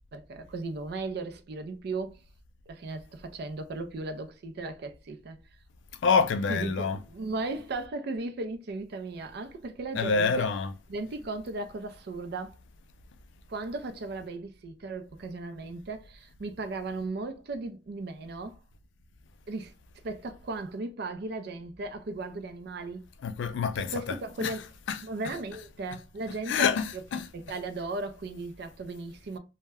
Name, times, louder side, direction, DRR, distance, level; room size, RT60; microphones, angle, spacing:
voice 1, 0.1-2.2 2.7-5.4 6.5-10.5 10.9-12.6 13.5-18.6 19.5-19.7 20.0-23.0 23.9-24.7 25.0-26.7 27.3-29.4, right 3 dB, 55° right, 0.4 m, -36 dB
voice 2, 6.0-7.0 10.0-10.7 23.2-24.2 24.4-24.6 24.9-25.0 26.5-27.3, left 5 dB, 70° left, 0.3 m, -26 dB
2.1 x 2.1 x 3.4 m
head